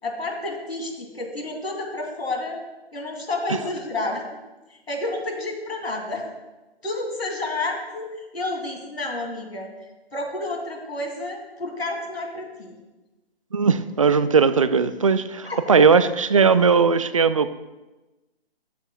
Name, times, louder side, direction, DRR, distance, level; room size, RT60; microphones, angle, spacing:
voice 1, 0.0-2.6 2.9-4.2 4.9-6.3 6.8-8.0 8.3-9.7 10.1-12.8 15.4-15.8, left 2 dB, 80° left, 1 dB, 2.8 m, -30 dB
voice 2, 13.5-17.5, right 5 dB, 35° right, 13 dB, 0.4 m, -18 dB
12.5 x 10.5 x 2.3 m, 1.1 s
figure-of-eight pair, 145°, 31 cm